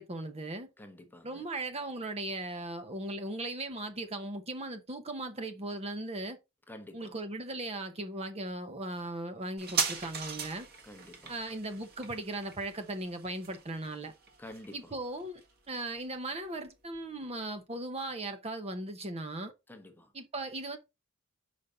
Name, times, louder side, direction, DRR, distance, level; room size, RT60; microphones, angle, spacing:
voice 1, 0.0-0.7 1.2-6.4 6.9-10.7 11.3-14.1 14.7-15.4 15.7-19.5 20.1-20.8, right 2 dB, 30° right, 0.8 m, -38 dB
voice 2, 0.8-1.4 6.7-7.1 10.8-11.3 14.4-14.9 19.7-20.1, left 1 dB, 10° left, 0.9 m, -49 dB
sound 1, 9.6-16.7 16.9-17.0, right 5 dB, 45° right, 1.7 m, -39 dB
5.6 x 5.1 x 3.9 m
head